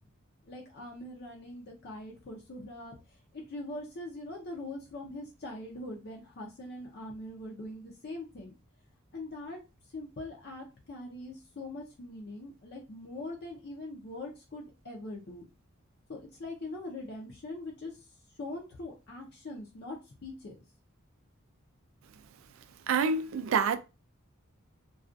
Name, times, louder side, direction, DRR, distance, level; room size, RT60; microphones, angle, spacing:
voice 1, 0.4-8.6 9.1-9.6 9.9-15.5 16.1-18.0 18.4-20.6, left 2 dB, 50° left, 0.5 m, -42 dB
voice 2, 22.9-23.8, right 5 dB, 70° right, 0.3 m, -27 dB
2.4 x 2.2 x 2.5 m
head